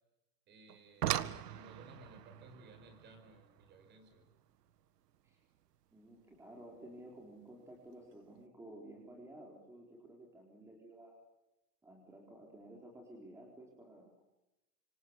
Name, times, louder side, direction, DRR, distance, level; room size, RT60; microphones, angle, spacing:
voice 1, 0.5-4.3, right 2 dB, 20° right, 8 dB, 5.7 m, -59 dB
sound 1, 0.7-5.8 7.1-7.2 7.8-8.1 8.4-8.5, right 12 dB, 80° right, 1.8 m, -41 dB
voice 2, 5.9-11.2 11.8-14.2, right 1 dB, 5° right, 0 dB, 4.1 m, -54 dB
27.5 x 24.5 x 8.2 m, 0.96 s
supercardioid pair, 160°, 47 cm